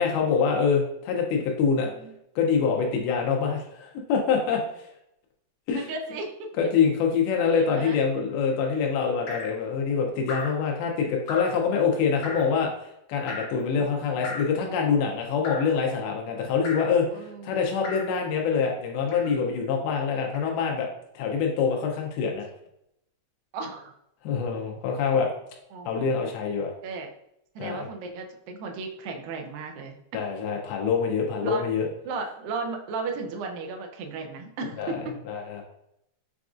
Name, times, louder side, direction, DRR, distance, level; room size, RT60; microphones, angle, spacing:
voice 1, 0.0-1.9 2.4-4.6 5.7-5.9 6.6-20.9 21.2-22.5 24.2-25.3 25.9-26.7 27.6-27.9 30.1-31.9 34.8-35.0 35.3-35.6, left 6 dB, 90° left, 1 dB, 2.5 m, -25 dB
voice 2, 1.7-2.1 5.8-6.5 7.5-8.0 13.7-13.9 17.1-17.6 23.5-23.9 25.7-26.1 26.8-27.1 27.6-29.9 31.4-31.6 32.1-35.2, right 4 dB, 80° right, 3 dB, 2.2 m, -35 dB
Drip, 9.3-9.6 10.3-10.6 11.3-11.6 12.2-12.6 13.3-13.6 14.2-14.6 15.4-15.8 16.6-17.0 17.8-18.2 19.1-19.4 20.3-20.5, left 3 dB, 70° left, 2.1 m, -37 dB
6.8 x 2.4 x 2.4 m, 0.79 s
omnidirectional pair, 4.3 m